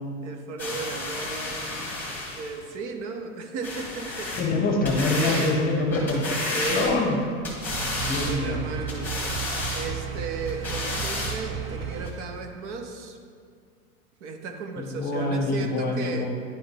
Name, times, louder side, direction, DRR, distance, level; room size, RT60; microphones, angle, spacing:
voice 1, 0.2-4.7 5.2-5.9 6.5-7.3 7.8-13.2 14.2-16.3, right 4 dB, 55° right, 5 dB, 0.9 m, -35 dB
sound 1, 0.6-2.6 3.6-4.5 4.8-5.5 5.9-7.1 7.4-8.4 8.9-9.9 10.5-11.4 12.1-12.2, left 2 dB, 5° left, 1.4 m, -31 dB
voice 2, 4.4-7.2 8.0-8.6 14.8-16.3, left 2 dB, 20° left, 1 dB, 0.9 m, -25 dB
sound 2, 7.7-12.1, right 6 dB, 30° right, 0.6 m, -33 dB
10.0 x 3.9 x 3.6 m, 2.1 s
hypercardioid pair, 120°, 40 cm